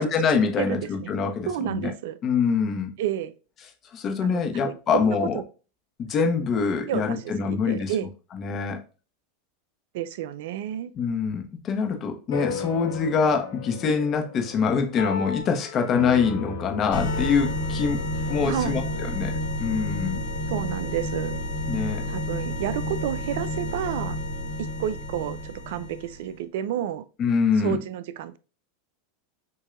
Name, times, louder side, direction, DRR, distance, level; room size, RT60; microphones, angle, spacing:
voice 1, 0.0-1.9 2.2-2.9 3.9-5.4 6.0-7.9 8.3-8.8 10.9-18.0 18.3-18.8 19.1-19.3 19.6-20.2 21.7-22.0 27.2-27.8, left 5 dB, 35° left, 1.1 m, -24 dB
voice 2, 0.6-1.1 1.5-2.2 3.0-3.3 4.2-5.3 6.9-8.1 9.9-10.9 18.5-18.8 20.5-21.4 22.0-24.2 24.8-27.0 27.6-28.4, right 11 dB, 70° right, 0.4 m, -30 dB
sound 1, 12.3-21.0, left 4 dB, 85° left, 2.4 m, -36 dB
sound 2, 16.9-26.3, equal, 70° left, 1.8 m, -30 dB
6.5 x 2.7 x 2.5 m
hypercardioid pair, 110°, 0 cm